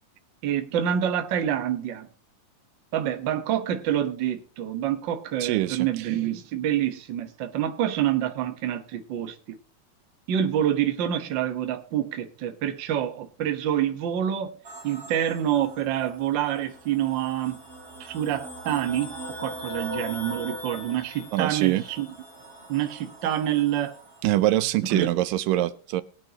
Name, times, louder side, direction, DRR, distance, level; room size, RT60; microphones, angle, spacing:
voice 1, 0.4-2.1 2.9-9.6 10.3-14.5 14.8-17.6 18.0-22.1 22.7-23.9 24.9-25.1, right 10 dB, 65° right, 1.2 m, -27 dB
voice 2, 5.4-5.9 21.3-21.8 24.2-26.0, right 15 dB, 85° right, 2.4 m, -24 dB
sound 1, 14.6-24.4, equal, 20° right, 2.3 m, -41 dB
22.0 x 8.9 x 2.9 m
omnidirectional pair, 3.8 m